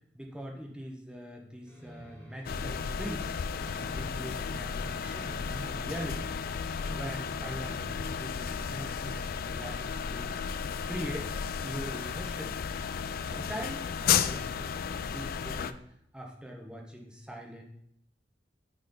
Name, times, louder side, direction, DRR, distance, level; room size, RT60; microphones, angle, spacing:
voice 1, 0.1-3.3 3.8-6.3 6.8-10.3 10.8-11.3 11.6-12.6 13.2-15.8 16.1-17.6, equal, 5° right, 0 dB, 0.9 m, -42 dB
sound 1, 1.6-8.4, right 1 dB, 10° left, 1.8 m, -49 dB
sound 2, 2.4-15.7, left 7 dB, 55° left, 0.3 m, -33 dB
8.6 x 4.2 x 3.9 m, 0.71 s
head